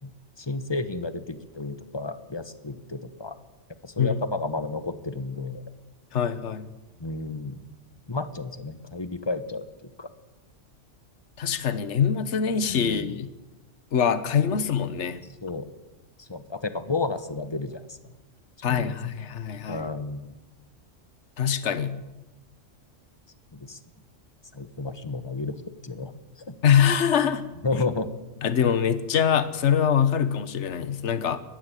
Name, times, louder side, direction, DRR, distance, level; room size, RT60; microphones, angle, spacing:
voice 1, 0.0-3.4 3.8-5.6 7.0-7.6 8.1-10.1 12.7-13.2 14.5-14.6 15.4-15.7 16.2-18.0 18.6-18.9 19.7-20.4 23.5-23.8 24.5-25.5 25.8-26.1 26.4-26.6 27.6-28.1 28.4-28.5, left 3 dB, 20° left, 12 dB, 1.3 m, -32 dB
voice 2, 6.1-6.7 11.4-13.3 13.9-15.2 18.6-19.9 21.4-22.0 26.6-27.4 28.4-31.4, left 8 dB, 65° left, 14 dB, 1.4 m, -24 dB
20.5 x 15.0 x 9.1 m, 1.0 s
omnidirectional pair, 1.3 m